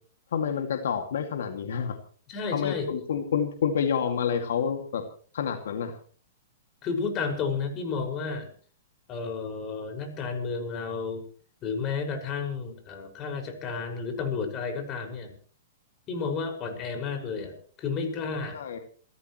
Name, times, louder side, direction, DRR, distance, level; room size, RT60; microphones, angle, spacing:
voice 1, 0.3-2.0 2.5-5.0 5.3-6.0 18.5-18.8, left 7 dB, 75° left, 5 dB, 2.3 m, -28 dB
voice 2, 2.3-2.9 6.8-8.5 9.1-11.2 11.6-15.4 16.1-18.6, left 5 dB, 30° left, 4 dB, 5.8 m, -32 dB
28.5 x 14.0 x 3.2 m, 0.42 s
hypercardioid pair, 140°, 0 cm